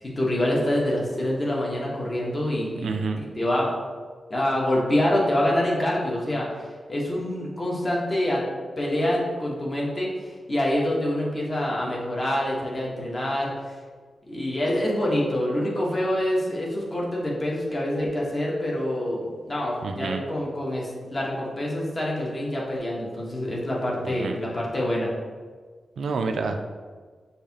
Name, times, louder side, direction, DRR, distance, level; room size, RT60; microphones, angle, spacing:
voice 1, 0.0-2.9 3.2-3.7 4.3-8.4 8.8-13.5 14.3-25.1, left 1 dB, 30° left, -4 dB, 1.1 m, -26 dB
voice 2, 2.8-3.2 19.8-20.2 24.0-24.4 26.0-26.8, right 4 dB, 75° right, 5 dB, 0.3 m, -29 dB
6.4 x 2.8 x 2.8 m, 1.5 s
wide cardioid pair, 100°, 0 cm